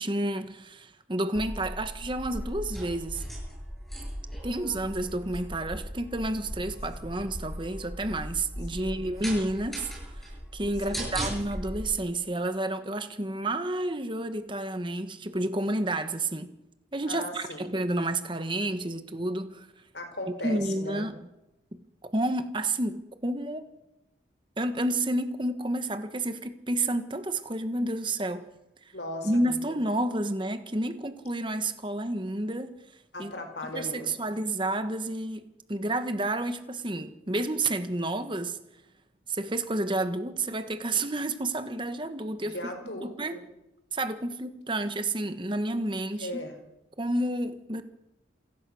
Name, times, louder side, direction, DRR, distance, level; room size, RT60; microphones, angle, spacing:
voice 1, 0.0-3.2 4.4-9.9 10.2-10.3 10.5-16.5 16.9-19.7 20.4-21.2 22.1-23.7 24.6-28.5 29.2-32.8 33.2-33.3 33.7-38.6 39.3-42.5 43.0-43.4 43.9-46.3 47.0-47.8, right 1 dB, 25° right, 1.4 m, -30 dB
sound 1, 1.3-11.8, equal, ahead, 7.1 m, -38 dB
voice 2, 10.8-11.2 17.1-17.7 19.9-21.1 28.9-29.8 33.1-34.4 42.4-43.4 46.2-46.6, left 1 dB, 70° left, 4.5 m, -38 dB
28.0 x 15.0 x 6.4 m
head